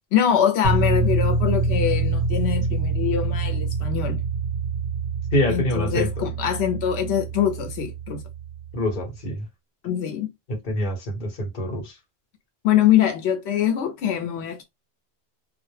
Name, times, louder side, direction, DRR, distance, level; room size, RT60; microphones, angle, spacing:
voice 1, 0.1-4.2 5.5-8.2 9.8-10.3 12.6-14.6, left 9 dB, 90° left, 0.9 m, -23 dB
sound 1, 0.6-8.8, right 3 dB, 50° right, 0.8 m, -25 dB
voice 2, 5.3-6.3 8.7-9.4 10.5-11.9, left 1 dB, 50° left, 1.0 m, -25 dB
2.2 x 2.0 x 3.1 m
omnidirectional pair, 1.1 m